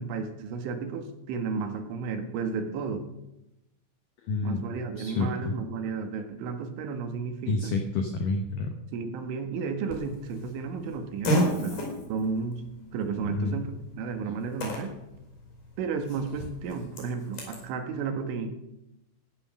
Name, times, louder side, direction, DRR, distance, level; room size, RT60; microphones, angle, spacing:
voice 1, 0.0-3.0 4.4-7.7 8.9-12.6 12.9-15.0 15.8-18.5, right 5 dB, 75° right, 6 dB, 3.8 m, -33 dB
voice 2, 4.2-4.6 5.0-5.5 7.5-8.7 13.3-13.6, left 3 dB, 80° left, 4 dB, 1.9 m, -29 dB
Fart, 9.9-17.6, equal, 45° left, 6.0 m, -34 dB
15.0 x 9.7 x 6.4 m, 0.89 s
omnidirectional pair, 5.7 m